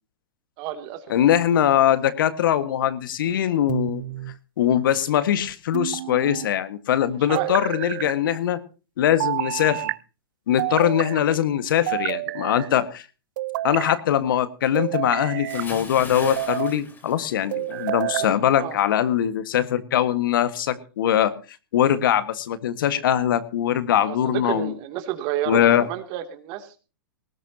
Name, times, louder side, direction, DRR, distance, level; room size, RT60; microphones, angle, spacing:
voice 1, 0.6-1.1 7.3-7.5 18.2-18.8 24.0-26.7, right 13 dB, 40° right, 7 dB, 2.7 m, -30 dB
voice 2, 1.1-4.0 4.6-8.6 9.0-9.9 10.5-13.0 13.6-21.3 21.7-24.7 25.5-25.9, left 10 dB, 65° left, 12 dB, 1.6 m, -22 dB
sound 1, 3.7-4.4 5.7-6.5 7.4-8.1 9.2-10.0 10.6-11.2 11.9-12.7 13.4-14.0 14.7-15.7 16.2-16.8 17.5-18.3, right 16 dB, 55° right, 0.6 m, -29 dB
Bathtub (filling or washing) / Splash splatter, 15.5-17.9 18.2-18.5, left 3 dB, 15° left, 4.3 m, -39 dB
19.5 x 17.0 x 2.9 m, 0.34 s
hypercardioid pair, 125°, 12 cm